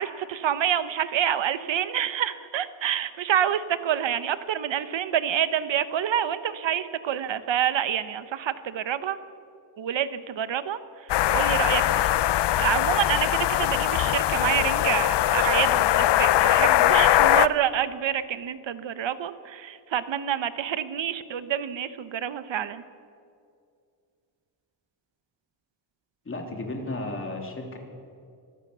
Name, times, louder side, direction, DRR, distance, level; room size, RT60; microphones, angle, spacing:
voice 1, 0.0-9.2 9.8-12.1 12.6-22.8, right 10 dB, 75° right, 13 dB, 1.1 m, -27 dB
sound 1, 11.1-17.5, left 13 dB, 65° left, 0.6 m, -21 dB
voice 2, 26.2-27.8, left 2 dB, 30° left, 2 dB, 3.0 m, -33 dB
24.5 x 16.0 x 6.8 m, 2.4 s
wide cardioid pair, 155°, 45 cm